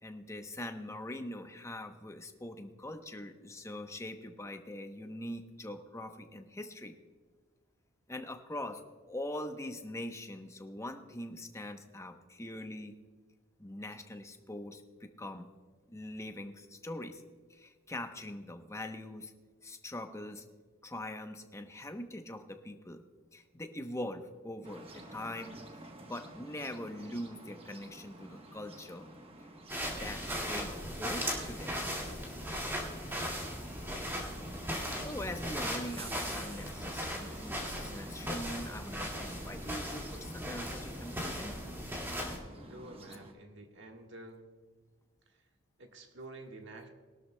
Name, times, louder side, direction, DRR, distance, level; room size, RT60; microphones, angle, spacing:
voice 1, 0.0-6.9 8.1-8.8 9.1-12.9 13.6-15.5 15.9-17.2 17.5-19.3 19.6-20.4 20.8-23.0 23.3-25.6 26.0-29.1 30.0-31.7 35.0-41.5, left 1 dB, 15° left, 6 dB, 0.8 m, -42 dB
sound 1, 24.6-43.3, right 2 dB, 30° right, 1.0 m, -51 dB
sound 2, 29.7-42.4, equal, 10° right, 2.0 m, -38 dB
voice 2, 42.7-44.5 45.8-46.9, right 2 dB, 60° right, 3 dB, 1.4 m, -49 dB
21.0 x 12.5 x 2.2 m, 1.4 s
head